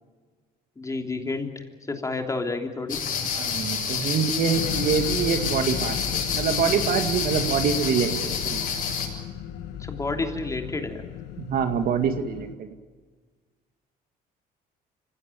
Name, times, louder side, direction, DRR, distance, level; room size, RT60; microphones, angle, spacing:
voice 1, 0.8-3.0 9.8-11.0, left 3 dB, 20° left, 4 dB, 3.2 m, -30 dB
sound 1, 2.9-9.1, left 6 dB, 55° left, 7.5 m, -28 dB
voice 2, 3.4-8.7 11.4-12.7, right 7 dB, 60° right, 7 dB, 2.1 m, -25 dB
sound 2, 4.5-12.5, left 10 dB, 80° left, 1.6 m, -35 dB
25.0 x 16.5 x 9.2 m, 1.5 s
cardioid pair, 110°, 17 cm